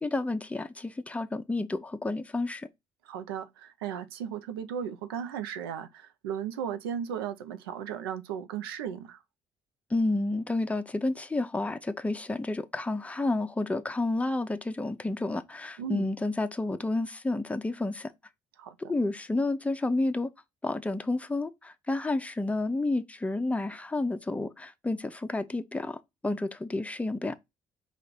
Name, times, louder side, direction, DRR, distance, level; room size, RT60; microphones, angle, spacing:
voice 1, 0.0-2.7 9.9-18.1 18.8-20.3 20.6-27.3, left 2 dB, 10° left, 0.7 m, -30 dB
voice 2, 3.0-9.2 15.8-16.1 18.6-18.7, right 8 dB, 90° right, 0.6 m, -36 dB
5.1 x 2.5 x 4.2 m
hypercardioid pair, 55°, 12 cm